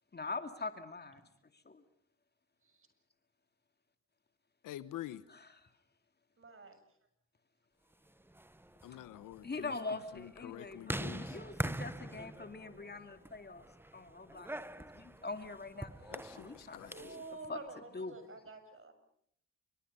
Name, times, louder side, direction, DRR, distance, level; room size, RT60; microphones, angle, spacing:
voice 1, 0.1-1.2 1.5-1.8 5.3-5.5 9.4-13.7 13.9-14.5 14.8-15.9 16.3-17.2 17.5-17.6 17.9-18.2, left 3 dB, 30° left, 8 dB, 2.4 m, -43 dB
voice 2, 4.6-5.2 8.8-11.4 16.0-17.2, left 13 dB, 80° left, 15 dB, 1.1 m, -48 dB
voice 3, 6.4-6.8 16.9-18.9, right 3 dB, 40° right, 8 dB, 7.4 m, -49 dB
sound 1, 8.2-17.3, right 1 dB, 5° right, 1.0 m, -44 dB
27.5 x 24.5 x 5.6 m, 0.69 s
supercardioid pair, 60°, 32 cm